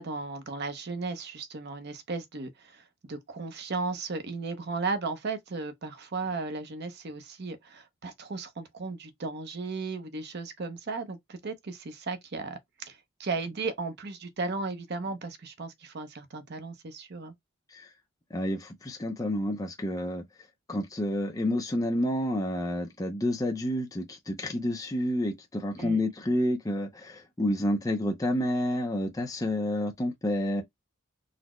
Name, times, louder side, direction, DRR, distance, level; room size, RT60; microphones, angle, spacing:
voice 1, 0.0-17.3 25.8-26.0, right 3 dB, 55° right, 0.6 m, -35 dB
voice 2, 18.3-20.2 20.7-30.6, left 1 dB, 15° left, 0.5 m, -29 dB
4.0 x 2.1 x 3.0 m
head